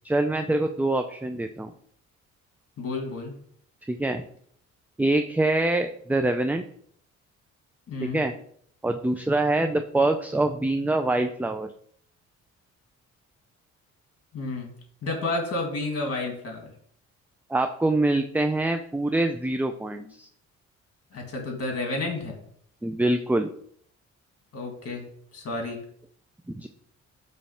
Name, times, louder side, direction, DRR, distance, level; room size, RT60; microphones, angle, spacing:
voice 1, 0.0-1.7 3.9-4.2 5.0-6.6 8.0-8.3 8.8-11.7 17.5-20.3 22.8-23.5 26.5-26.7, right 2 dB, 5° right, 7 dB, 0.4 m, -25 dB
voice 2, 2.8-3.4 7.9-8.2 14.3-14.7 15.0-16.7 21.1-22.4 24.5-25.0 25.3-25.8, left 2 dB, 50° left, 2 dB, 2.3 m, -31 dB
7.0 x 3.2 x 5.7 m, 0.62 s
cardioid pair, 90°, 30 cm